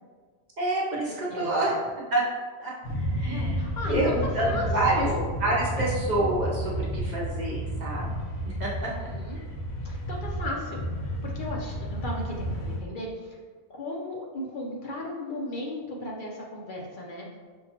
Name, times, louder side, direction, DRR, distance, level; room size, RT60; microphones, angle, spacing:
voice 1, 0.6-1.7 2.1-2.2 2.6-5.1 5.4-8.1 8.5-8.9 9.3-9.4, right 2 dB, 50° right, -5 dB, 0.8 m, -28 dB
voice 2, 1.3-1.7 3.3-4.7 4.9-5.3 8.8-9.4 9.8-13.4 13.7-17.4, left 1 dB, 55° left, -2 dB, 0.7 m, -36 dB
sound 1, 2.8-12.8, equal, 85° left, 1.0 m, -31 dB
5.2 x 2.3 x 2.8 m, 1.5 s
omnidirectional pair, 1.1 m